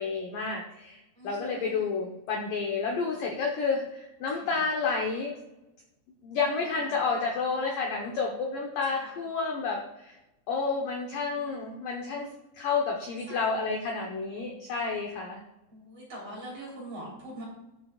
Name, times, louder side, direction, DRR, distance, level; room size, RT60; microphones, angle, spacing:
voice 1, 0.0-1.0 1.2-5.3 6.2-10.2 10.5-12.3 12.5-15.4, left 4 dB, 75° left, 0 dB, 2.0 m, -30 dB
voice 2, 1.2-1.9 4.4-4.5 8.9-9.1 11.0-11.6 13.3-13.6 15.7-17.4, right 1 dB, 35° right, -5 dB, 4.3 m, -43 dB
19.0 x 8.0 x 2.5 m, 0.94 s
omnidirectional pair, 5.5 m